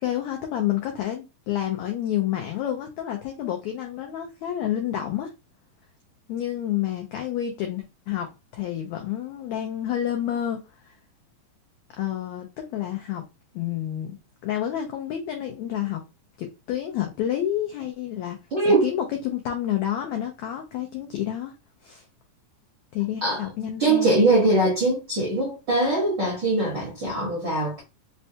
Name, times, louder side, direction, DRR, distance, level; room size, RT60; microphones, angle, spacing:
voice 1, 0.0-5.3 6.3-10.9 12.0-13.2 13.5-14.2 14.4-16.0 16.4-18.4 18.6-21.5 21.8-22.0 22.9-24.2, left 11 dB, 85° left, 1.6 m, -29 dB
voice 2, 18.5-18.9 23.2-27.8, right 2 dB, 65° right, 1.1 m, -22 dB
5.3 x 2.2 x 2.7 m
omnidirectional pair, 3.9 m